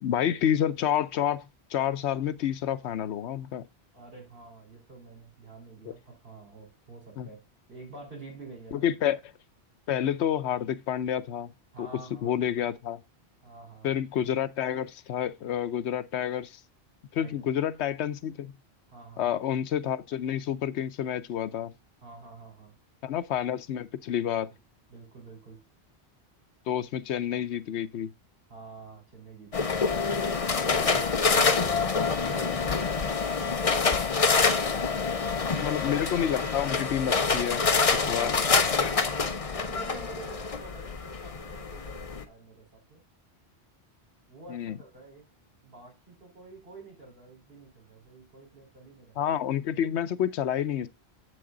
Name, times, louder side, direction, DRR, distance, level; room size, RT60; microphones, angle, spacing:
voice 1, 0.0-3.6 7.2-7.3 8.7-9.3 9.9-11.5 11.8-11.9 12.2-13.0 13.8-16.6 17.1-18.5 19.2-21.7 23.0-24.5 26.7-28.1 35.5-37.7 37.9-38.3 44.5-44.8 49.2-50.9, left 10 dB, 85° left, 1.0 m, -29 dB
voice 2, 3.9-7.4 7.7-8.8 11.7-12.4 13.4-13.9 17.2-17.5 18.9-19.4 22.0-22.7 24.2-24.6 24.9-25.6 28.5-29.8 30.3-35.8 38.0-43.0 44.3-45.3 45.6-49.2, right 3 dB, 60° right, 4.3 m, -48 dB
sound 1, 29.5-42.2, left 4 dB, 35° left, 0.8 m, -26 dB
7.9 x 6.6 x 3.7 m
omnidirectional pair, 1.1 m